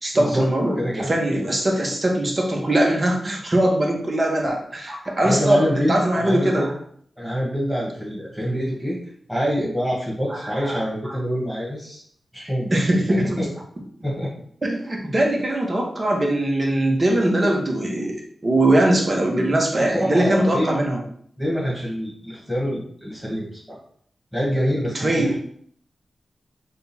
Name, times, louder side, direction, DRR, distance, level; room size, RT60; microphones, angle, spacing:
voice 1, 0.0-6.7 10.3-10.8 12.7-13.4 14.6-18.1 18.4-21.0 24.9-25.4, right 1 dB, 45° right, 0 dB, 1.1 m, -21 dB
voice 2, 5.2-6.7 7.2-9.0 9.3-12.0 12.3-12.8 13.1-13.5 14.0-14.3 19.8-20.8 21.4-23.8 24.3-25.4, equal, 5° right, -6 dB, 1.6 m, -25 dB
3.6 x 2.4 x 4.3 m, 0.62 s
cardioid pair, 45°, 0 cm